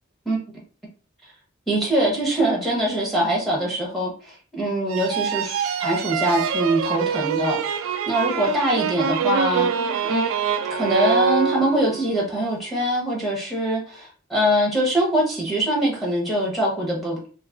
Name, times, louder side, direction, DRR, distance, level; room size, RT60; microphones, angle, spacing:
voice 1, 1.7-9.7 10.1-10.2 10.7-17.3, right 1 dB, ahead, -4 dB, 0.7 m, -23 dB
sound 1, 4.9-12.1, right 6 dB, 80° right, 0.3 m, -25 dB
2.6 x 2.4 x 3.6 m, 0.41 s
head